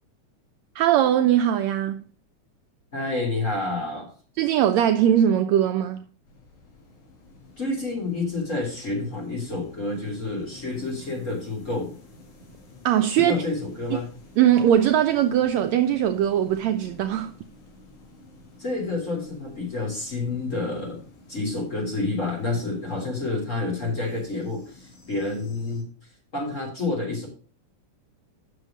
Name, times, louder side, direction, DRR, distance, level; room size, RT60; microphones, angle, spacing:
voice 1, 0.7-2.1 4.4-6.1 12.8-13.4 13.9-14.0 14.4-17.3, right 10 dB, 80° right, 1.7 m, -20 dB
voice 2, 2.9-4.1 7.6-11.9 13.2-14.1 18.6-21.0 21.3-25.9 26.3-27.3, left 2 dB, 25° left, 3.6 m, -29 dB
sound 1, 6.2-25.8, left 2 dB, 70° left, 3.9 m, -50 dB
8.2 x 6.4 x 6.5 m
omnidirectional pair, 3.6 m